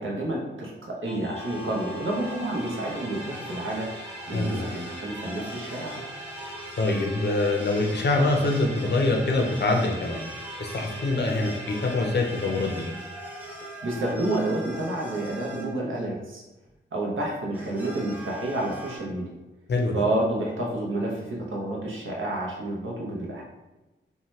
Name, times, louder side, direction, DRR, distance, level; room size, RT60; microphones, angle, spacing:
voice 1, 0.0-3.9 4.3-6.0 13.6-16.4 16.9-19.3 19.9-23.4, right 1 dB, 75° right, -2 dB, 0.7 m, -29 dB
sound 1, 1.0-14.1, equal, 30° right, 1.1 m, -42 dB
sound 2, 1.4-15.7 16.7-16.8 17.4-19.0, right 1 dB, 10° right, 0.6 m, -42 dB
voice 2, 4.3-4.8 6.8-10.2 10.6-12.9 19.7-20.0, left 2 dB, 55° left, 1 dB, 0.5 m, -24 dB
2.7 x 2.1 x 3.1 m, 1.1 s
wide cardioid pair, 100°, 21 cm